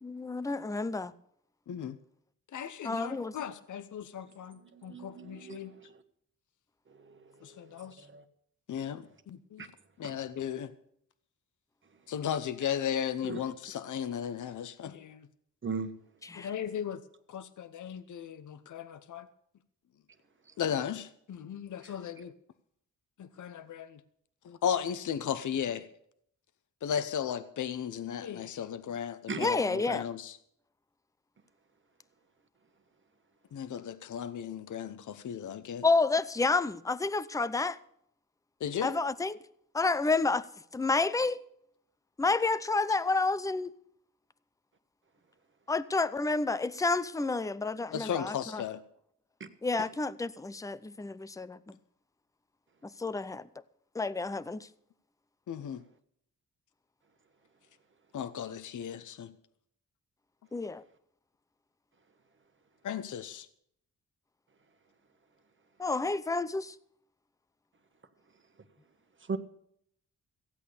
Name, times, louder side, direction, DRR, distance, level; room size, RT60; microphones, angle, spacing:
voice 1, 0.0-1.1 2.8-3.3 16.2-16.5 29.4-30.0 35.8-37.8 38.8-39.4 39.7-40.5 40.7-41.4 42.2-43.7 45.7-48.6 49.6-51.8 53.0-53.4 53.9-54.7 60.5-60.8 65.8-66.7, left 3 dB, 10° left, 0.6 m, -29 dB
voice 2, 1.7-2.0 2.5-5.8 7.4-8.1 8.7-9.7 10.0-10.7 12.1-15.3 16.3-17.0 17.3-19.3 20.6-22.3 23.2-24.0 24.4-25.9 26.8-30.4 33.5-35.9 38.6-38.9 47.9-48.8 55.5-55.8 58.1-59.3 62.8-63.5, left 8 dB, 60° left, 0.8 m, -36 dB
voice 3, 4.9-5.6 7.1-7.7 8.1-8.2 9.6-9.7 13.3-13.4 15.6-15.9 29.3-29.5 49.4-49.5 69.3-69.4, right 5 dB, 35° right, 1.3 m, -37 dB
15.5 x 8.5 x 6.9 m
cardioid pair, 85°, 33 cm